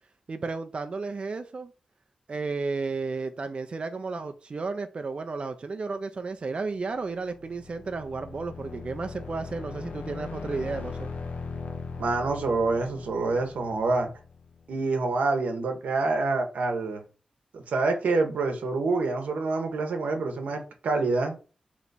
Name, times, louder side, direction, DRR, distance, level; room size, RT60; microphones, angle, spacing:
voice 1, 0.3-1.7 2.3-11.1, right 4 dB, 50° right, 0.4 m, -33 dB
sound 1, 7.0-14.7, left 4 dB, 80° left, 0.6 m, -40 dB
voice 2, 12.0-14.1 14.7-17.0 17.5-21.4, right 3 dB, 90° right, 0.8 m, -27 dB
3.3 x 3.0 x 4.0 m
cardioid pair, 70°, 2 cm